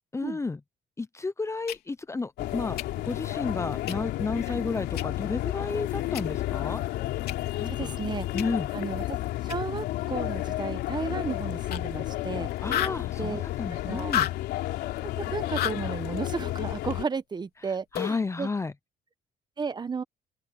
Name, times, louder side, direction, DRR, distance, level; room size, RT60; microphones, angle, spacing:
voice 1, 0.1-0.6 1.0-6.8 7.6-7.9 8.3-8.7 12.6-14.3 17.9-18.7, left 3 dB, 15° left, 0.8 m, -32 dB
sound 1, 1.7-1.8 2.8-2.9 3.9-4.0 5.0-5.1 6.1-6.2 7.3-7.4 8.4-8.5 9.5-9.6 11.7-11.8 12.1-12.2 12.5-13.0 14.0-14.4 15.6-15.8 17.9-18.3, left 11 dB, 65° left, 3.6 m, -29 dB
sound 2, 2.4-17.0, left 15 dB, 80° left, 3.8 m, -32 dB
voice 2, 7.7-8.3 8.7-9.0 9.4-12.5 13.2-13.4 13.7-14.1 15.0-18.5 19.6-20.0, right 5 dB, 25° right, 1.1 m, -34 dB
open air
cardioid pair, 110°, 17 cm